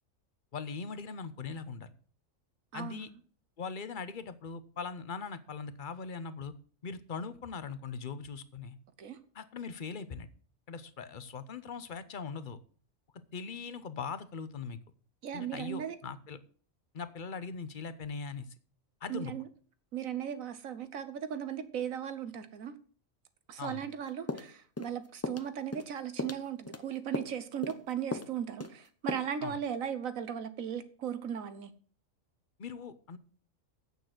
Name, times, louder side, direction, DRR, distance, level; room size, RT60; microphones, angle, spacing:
voice 1, 0.5-1.9 2.7-3.1 3.6-6.5 6.8-8.8 9.3-10.3 10.7-12.6 13.3-14.8 15.3-16.4 16.9-18.5 19.0-19.3 23.6-23.8 29.4-29.6 32.6-33.2, left 5 dB, 45° left, 13 dB, 0.9 m, -40 dB
voice 2, 2.7-3.2 9.0-9.2 15.2-15.9 19.1-19.5 19.9-22.7 23.5-31.7, right 9 dB, 90° right, 12 dB, 1.4 m, -37 dB
sound 1, 24.3-24.9 25.2-25.5 25.7-25.9 26.2-26.8 27.1-27.4 27.6-27.8 28.1-28.3 28.6-28.8 29.1-29.2, left 2 dB, 20° left, 0.4 m, -37 dB
8.8 x 6.8 x 7.8 m, 0.43 s
omnidirectional pair, 1.4 m